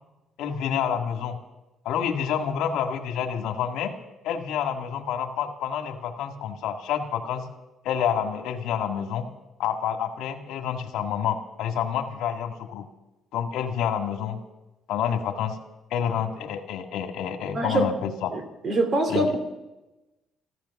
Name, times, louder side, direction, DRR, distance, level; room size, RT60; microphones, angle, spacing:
voice 1, 0.4-1.4 1.9-3.9 4.2-7.5 7.8-9.3 9.6-12.9 13.3-14.4 14.9-15.6 15.9-18.3 19.1-19.4, left 8 dB, 80° left, 6 dB, 1.8 m, -28 dB
voice 2, 17.5-17.9 18.3-19.4, right 2 dB, 40° right, 7 dB, 2.6 m, -24 dB
15.0 x 14.0 x 7.0 m, 1.0 s
cardioid pair, 155°, 0 cm